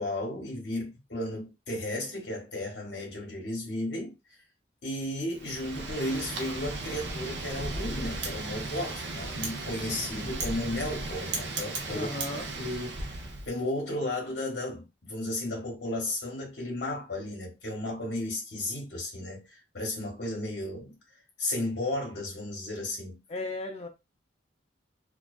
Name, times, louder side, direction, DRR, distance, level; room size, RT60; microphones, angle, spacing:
voice 1, 0.0-4.1 4.8-12.1 12.6-12.9 13.5-21.0 21.4-23.2, left 1 dB, 65° left, 0.9 m, -34 dB
Wind, 5.4-13.5, right 2 dB, 75° right, 0.6 m, -36 dB
voice 2, 11.9-12.5 23.3-23.9, left 2 dB, 35° left, 0.4 m, -35 dB
2.4 x 2.2 x 2.3 m
head